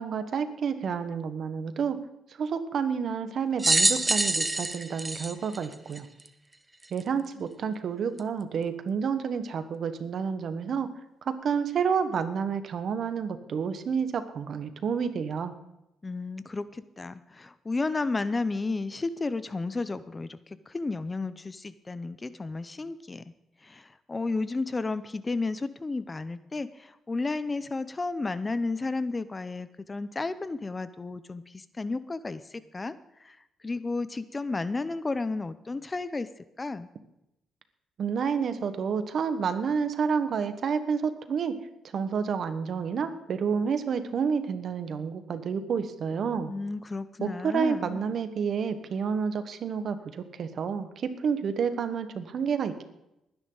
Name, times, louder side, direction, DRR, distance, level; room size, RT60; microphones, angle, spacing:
voice 1, 0.0-2.0 2.4-6.1 6.9-10.9 11.2-15.5 38.0-41.5 41.9-46.5 47.2-52.8, right 6 dB, 60° right, 10 dB, 1.3 m, -29 dB
sound 1, 3.6-6.3 7.0-7.1 8.2-8.3, right 2 dB, 15° right, 0.9 m, -25 dB
voice 2, 16.0-23.2 23.6-32.9 33.2-33.4 33.6-36.3 36.6-36.9 46.5-48.0, left 3 dB, 25° left, 14 dB, 0.6 m, -32 dB
20.0 x 9.9 x 4.0 m, 0.86 s
cardioid pair, 90°, 0 cm